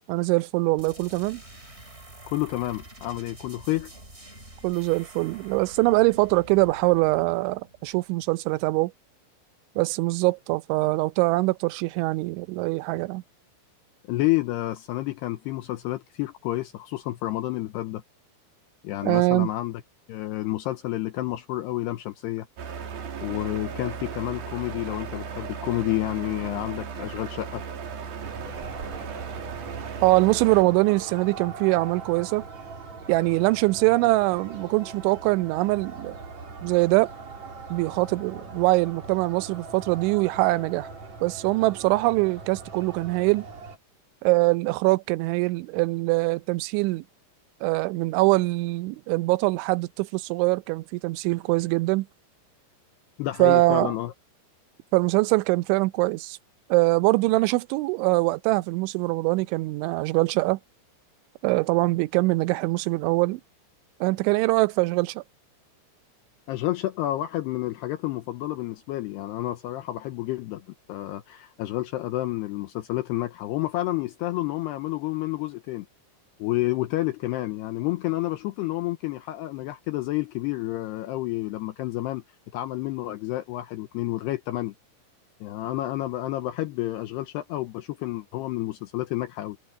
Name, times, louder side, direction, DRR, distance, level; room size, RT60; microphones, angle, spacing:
voice 1, 0.1-1.4 4.6-8.9 9.8-13.2 19.0-19.5 30.0-32.4 33.1-36.2 36.6-37.1 37.7-40.9 41.2-43.5 44.2-47.0 47.6-52.1 53.4-53.9 54.9-56.4 56.7-60.6 61.4-63.4 64.0-65.2, right 22 dB, 90° right, 3.1 m, -23 dB
sound 1, 0.8-8.3, right 1 dB, 15° right, 5.8 m, -47 dB
voice 2, 2.3-3.9 14.1-18.0 18.8-19.8 20.1-22.5 23.2-27.6 53.2-54.1 66.5-70.6 70.9-75.9 76.4-82.2 82.5-84.7 85.4-89.6, left 16 dB, 75° left, 2.8 m, -29 dB
sound 2, 22.6-30.6, right 6 dB, 55° right, 4.3 m, -36 dB
sound 3, 28.2-43.8, right 4 dB, 40° right, 4.8 m, -41 dB
omnidirectional pair, 5.2 m